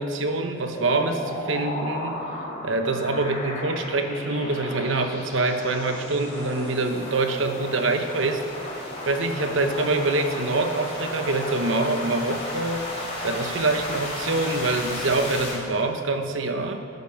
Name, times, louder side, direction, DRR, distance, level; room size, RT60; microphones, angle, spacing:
voice 1, 0.0-2.2 2.6-8.7 9.1-12.9 13.2-16.8, right 2 dB, 70° right, 6 dB, 1.0 m, -25 dB
sound 1, 0.7-15.5, left 1 dB, 35° left, 2.9 m, -34 dB
12.0 x 9.5 x 5.9 m, 2.5 s
head